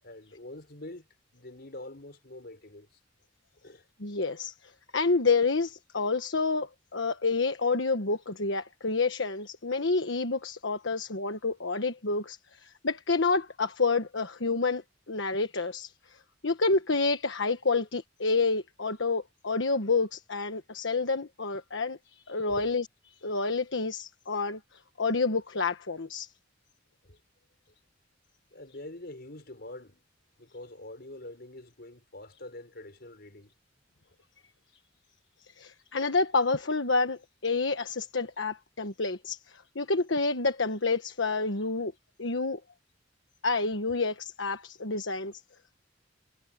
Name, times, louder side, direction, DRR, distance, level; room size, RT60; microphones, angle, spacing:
voice 1, 0.0-1.1 1.3-3.0 3.6-3.9 17.7-17.9 22.4-22.8 27.0-27.2 28.5-30.0 30.4-33.5, left 1 dB, 55° left, 5.0 m, -45 dB
voice 2, 4.0-16.2 16.4-22.9 23.2-26.3 35.6-41.9 42.2-42.6 43.4-45.3, left 3 dB, 70° left, 1.3 m, -29 dB
head